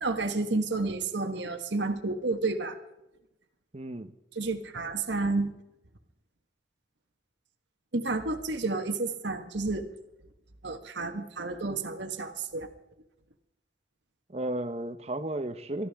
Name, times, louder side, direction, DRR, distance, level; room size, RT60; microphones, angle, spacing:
voice 1, 0.0-2.8 4.3-5.5 7.9-9.9 10.6-12.7, right 3 dB, 75° right, 6 dB, 1.4 m, -30 dB
voice 2, 3.7-4.1 14.3-15.9, right 1 dB, 35° right, 10 dB, 0.9 m, -33 dB
23.0 x 13.5 x 3.5 m, 0.88 s
head